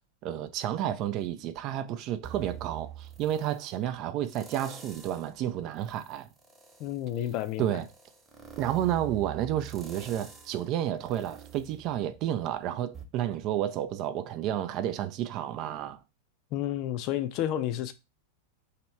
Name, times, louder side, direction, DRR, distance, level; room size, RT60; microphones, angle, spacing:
voice 1, 0.2-6.3 7.6-7.8 8.6-16.0, right 11 dB, 40° right, 0.4 m, -31 dB
sound 1, 2.2-3.6 4.3-5.3 5.8-12.5 12.9-13.0, right 8 dB, 15° right, 1.0 m, -46 dB
voice 2, 6.8-7.8 16.5-17.9, left 12 dB, 40° left, 0.5 m, -31 dB
3.0 x 2.9 x 4.5 m
figure-of-eight pair, 90°, 0 cm